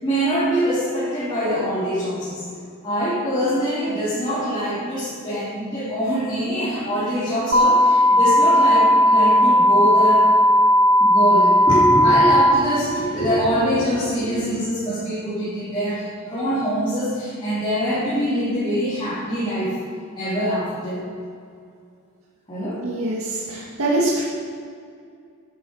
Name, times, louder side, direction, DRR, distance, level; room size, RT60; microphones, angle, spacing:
voice 1, 0.0-2.4 2.8-10.3 11.0-19.8 20.2-21.1 22.5-22.8 24.0-24.1, equal, 20° left, -12 dB, 3.6 m, -24 dB
sound 1, 7.5-12.5, equal, 50° right, 1.1 m, -15 dB
voice 2, 22.8-24.2, right 2 dB, 75° right, -4 dB, 1.8 m, -23 dB
11.0 x 9.7 x 5.5 m, 2.3 s
head